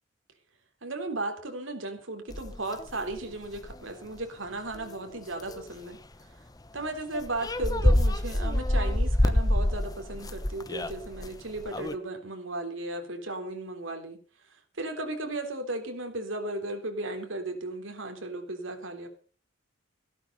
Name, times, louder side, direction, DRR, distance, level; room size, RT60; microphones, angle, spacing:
voice 1, 0.8-6.0 6.7-14.2 14.8-19.1, right 2 dB, 75° right, 5 dB, 3.7 m, -35 dB
sound 1, 2.3-3.7 4.2-4.3 4.7-5.0 5.4-5.7 6.9-7.0 7.1-11.9, left 1 dB, 20° left, 0.9 m, -27 dB
15.5 x 12.5 x 5.5 m, 0.40 s
head